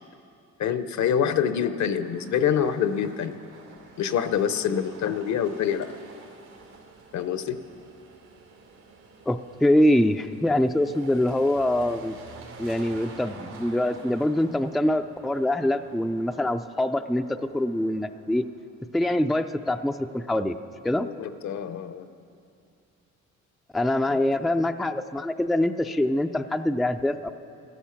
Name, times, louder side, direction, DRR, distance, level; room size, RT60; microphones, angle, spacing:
voice 1, 0.6-3.4 4.0-5.9 7.1-7.6 21.0-22.1 24.1-24.2, left 8 dB, 65° left, 12 dB, 0.7 m, -26 dB
sound 1, 1.6-18.6, right 4 dB, 90° right, 2.9 m, -49 dB
voice 2, 9.3-12.2 12.6-18.5 18.9-20.6 20.8-21.1 23.7-27.3, left 1 dB, ahead, 7 dB, 0.3 m, -24 dB
14.0 x 13.5 x 5.8 m, 2.6 s
cardioid pair, 90°, 30 cm